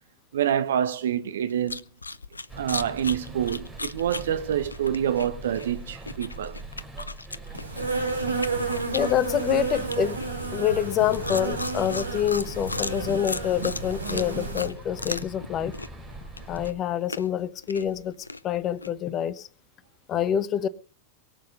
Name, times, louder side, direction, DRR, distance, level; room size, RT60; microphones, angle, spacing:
voice 1, 0.3-1.8 2.5-6.6 13.6-13.7, right 9 dB, 60° right, 1.3 m, -27 dB
sound 1, 1.5-15.5 15.7-18.9, left 3 dB, 80° left, 0.7 m, -37 dB
sound 2, 2.5-16.7, right 2 dB, 10° right, 5.2 m, -42 dB
Insect, 7.5-14.7, right 3 dB, 85° right, 3.3 m, -31 dB
voice 2, 8.9-10.2 10.5-15.7 16.5-18.1 18.4-19.5 20.1-20.7, left 10 dB, 30° left, 1.1 m, -26 dB
23.0 x 7.9 x 5.2 m
figure-of-eight pair, 90°, 0 cm